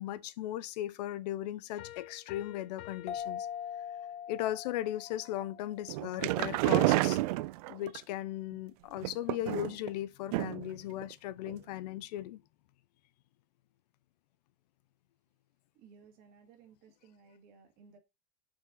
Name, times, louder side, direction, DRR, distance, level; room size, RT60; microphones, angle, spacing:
voice 1, 0.0-3.5 4.3-7.2 7.7-12.4, left 13 dB, 75° left, 0.8 m, -37 dB
Piano, 1.8-4.3, left 15 dB, 50° left, 1.0 m, -50 dB
sound 1, 3.1-6.4, left 9 dB, 30° left, 0.6 m, -42 dB
sound 2, 5.9-8.0 9.0-9.9 10.3-10.7 11.0-11.1 11.5-11.6, right 18 dB, 65° right, 0.4 m, -29 dB
voice 2, 15.7-18.0, right 6 dB, 45° right, 2.4 m, -59 dB
6.3 x 4.7 x 3.9 m
supercardioid pair, 155°, 21 cm